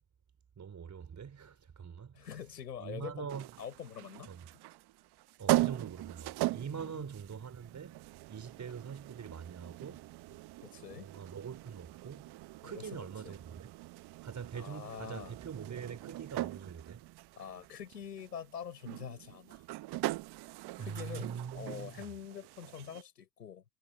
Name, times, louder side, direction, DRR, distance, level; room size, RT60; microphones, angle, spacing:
voice 1, 0.6-2.3 2.8-3.5 4.3-4.4 5.4-8.0 8.3-10.1 10.9-12.3 12.6-13.7 14.2-17.0 20.8-21.9, right 7 dB, 35° right, 4.6 m, -43 dB
voice 2, 2.1-3.3 3.6-4.3 6.7-7.1 10.6-11.1 12.6-13.4 14.5-15.4 17.4-19.6 20.8-23.6, left 8 dB, 90° left, 5.3 m, -45 dB
sound 1, 3.3-23.0, right 18 dB, 55° right, 1.0 m, -40 dB
hypercardioid pair, 60°, 47 cm